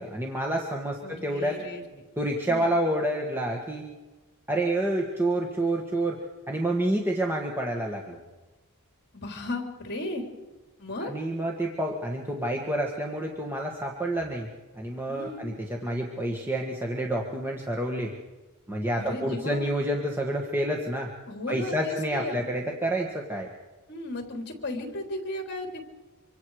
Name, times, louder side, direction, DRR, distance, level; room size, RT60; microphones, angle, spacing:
voice 1, 0.0-1.6 2.2-3.9 4.5-8.2 11.0-14.5 14.7-18.1 18.7-21.1 21.5-23.5, right 1 dB, 10° right, 0 dB, 1.7 m, -28 dB
voice 2, 1.0-2.0 2.5-2.7 9.1-10.2 10.8-11.1 15.1-15.6 19.0-19.7 21.3-22.5 23.9-25.8, left 2 dB, 50° left, 3 dB, 3.4 m, -35 dB
25.5 x 25.5 x 4.9 m, 1.2 s
head